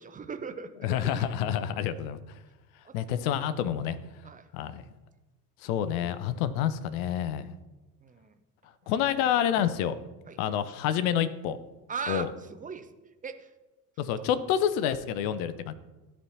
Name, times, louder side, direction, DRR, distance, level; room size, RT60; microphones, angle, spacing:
voice 1, 0.0-1.2 2.8-3.3 4.2-4.5 8.0-8.4 10.3-10.4 11.9-12.9 13.2-13.5, right 5 dB, 20° right, 9 dB, 0.5 m, -39 dB
voice 2, 0.8-2.2 2.9-4.0 4.5-4.8 5.6-7.5 8.9-9.9 10.4-11.6 12.1-12.3 14.0-15.7, left 9 dB, 60° left, 13 dB, 0.7 m, -28 dB
13.0 x 4.4 x 2.8 m, 1.1 s
figure-of-eight pair, 55°, 46 cm